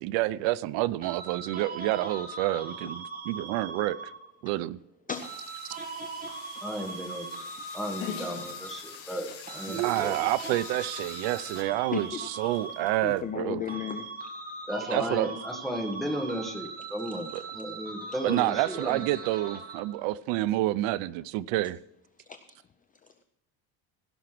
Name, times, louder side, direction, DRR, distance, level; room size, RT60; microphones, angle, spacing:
voice 1, 0.0-4.1 4.4-4.8 9.7-13.6 14.9-15.3 17.3-17.4 18.2-21.8, right 17 dB, 85° right, 19 dB, 0.6 m, -28 dB
sound 1, 1.0-4.4 5.2-9.0 9.5-13.4 13.7-20.0, right 3 dB, 20° right, 2.0 m, -40 dB
sound 2, 5.1-11.6, left 8 dB, 50° left, 3.9 m, -47 dB
voice 2, 6.6-7.3 7.7-9.3 9.5-10.2 14.7-19.0, equal, ahead, 2 dB, 1.6 m, -34 dB
Dog, 7.9-13.2, left 8 dB, 75° left, 2.8 m, -46 dB
voice 3, 11.9-12.3 13.0-14.1 22.3-22.4, left 8 dB, 20° left, 9 dB, 0.3 m, -34 dB
16.5 x 5.9 x 5.9 m, 0.86 s
cardioid pair, 165°, 43 cm